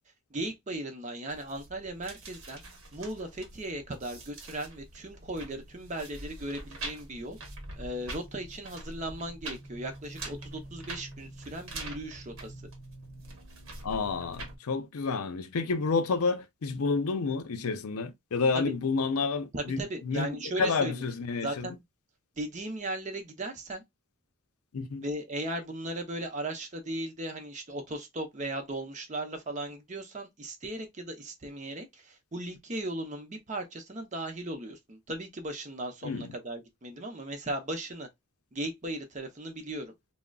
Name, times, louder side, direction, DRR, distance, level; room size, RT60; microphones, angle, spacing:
voice 1, 0.3-2.6 2.9-7.4 7.8-12.5 18.5-18.7 19.5-21.0 21.4-21.8 22.4-23.8 25.0-38.1 38.5-39.9, right 1 dB, 35° right, 0.7 m, -37 dB
sound 1, 1.3-14.6, right 2 dB, 60° right, 0.9 m, -44 dB
voice 2, 13.8-21.7 24.7-25.0 36.0-36.3, left 4 dB, 80° left, 0.5 m, -30 dB
3.7 x 2.1 x 2.2 m
head